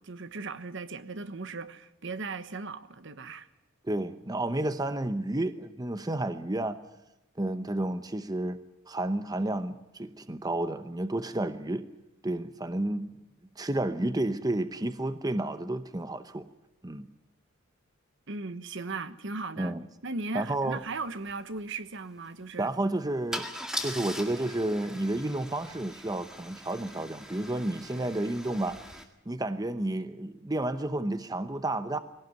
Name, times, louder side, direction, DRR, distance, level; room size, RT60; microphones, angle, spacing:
voice 1, 0.1-3.5 18.3-19.7 20.0-22.7, right 3 dB, 60° right, 1.1 m, -37 dB
voice 2, 3.8-6.8 7.4-8.6 8.9-11.8 12.2-13.2 13.6-16.5 16.8-17.1 19.6-19.8 20.3-20.8 22.6-23.5 23.8-28.8 29.3-32.0, right 1 dB, 20° right, 0.8 m, -31 dB
Car / Engine starting / Idling, 20.7-20.8 21.1-21.3 23.3-29.0, equal, 5° right, 1.9 m, -40 dB
20.5 x 17.5 x 9.3 m
head